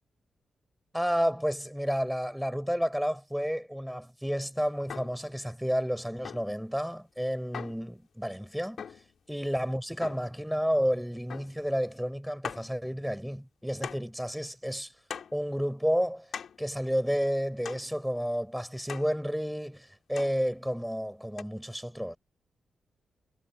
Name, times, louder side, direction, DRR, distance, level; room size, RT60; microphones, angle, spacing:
voice 1, 0.9-8.8 9.3-14.9 15.3-16.3 16.6-22.2, equal, ahead, 7.5 m, -31 dB
sound 1, 4.9-5.3 6.2-6.6 7.5-7.9 8.8-9.1 10.0-10.4 11.3-11.6 11.9-12.0 12.4-12.7 13.8-14.2 15.1-15.4 16.3-16.7 17.6-17.9 18.9-19.2 20.2-20.4 21.4-21.5, left 7 dB, 65° left, 4.4 m, -41 dB
cardioid pair, 95°, 0 cm